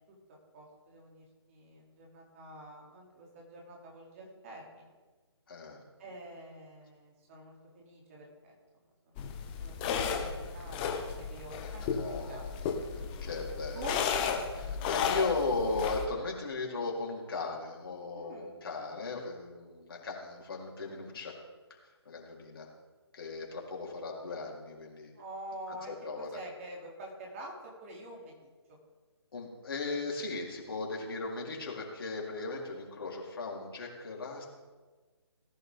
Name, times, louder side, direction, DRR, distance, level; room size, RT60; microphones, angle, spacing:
voice 1, 0.5-4.8 6.0-8.5 9.0-9.3 9.6-11.9 12.3-12.4 13.7-14.0 18.1-18.6 25.1-25.9 26.2-28.5, right 1 dB, 30° right, -1 dB, 3.2 m, -47 dB
voice 2, 5.5-5.8 11.8-13.9 14.5-21.3 22.0-22.7 23.1-25.1 25.7-26.4 29.3-34.5, left 3 dB, 55° left, -2 dB, 4.0 m, -37 dB
sound 1, 9.2-16.1, left 6 dB, 20° left, 1.3 m, -34 dB
18.5 x 11.0 x 3.8 m, 1.3 s
figure-of-eight pair, 150°, 14 cm